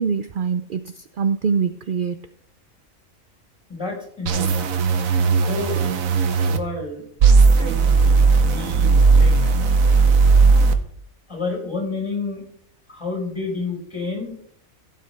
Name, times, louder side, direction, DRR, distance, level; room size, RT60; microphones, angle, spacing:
voice 1, 0.0-2.2, right 6 dB, 65° right, 11 dB, 0.5 m, -24 dB
voice 2, 3.7-4.8 5.4-5.9 6.4-7.1 7.6-9.4 11.3-12.4 12.9-14.3, left 3 dB, 20° left, 1 dB, 4.7 m, -30 dB
sound 1, 4.3-6.6 7.2-10.7, right 4 dB, 80° right, 1.4 m, -16 dB
16.0 x 8.5 x 3.3 m, 0.64 s
omnidirectional pair, 1.4 m